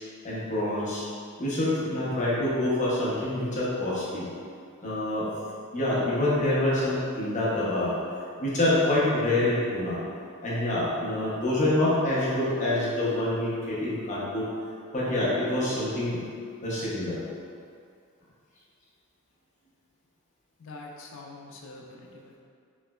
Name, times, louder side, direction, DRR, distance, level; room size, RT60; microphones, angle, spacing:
voice 1, 0.2-1.0 1.4-4.3 4.8-5.3 5.7-8.0 8.4-10.0 10.4-14.5 14.9-16.2 16.6-17.2, left 1 dB, 35° left, -8 dB, 0.7 m, -26 dB
voice 2, 20.6-22.4, left 2 dB, 65° left, 0 dB, 0.4 m, -45 dB
3.1 x 2.9 x 2.2 m, 2.3 s
head